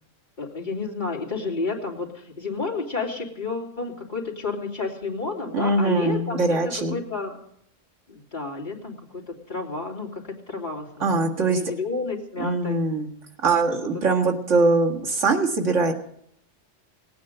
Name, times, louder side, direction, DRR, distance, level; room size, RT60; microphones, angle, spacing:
voice 1, 0.4-7.4 8.1-12.8, left 3 dB, 40° left, -3 dB, 3.2 m, -31 dB
voice 2, 5.5-7.0 11.0-11.6 12.4-13.1 13.4-15.9, right 3 dB, 80° right, 2 dB, 2.1 m, -22 dB
19.0 x 9.4 x 7.9 m, 0.71 s
omnidirectional pair, 1.3 m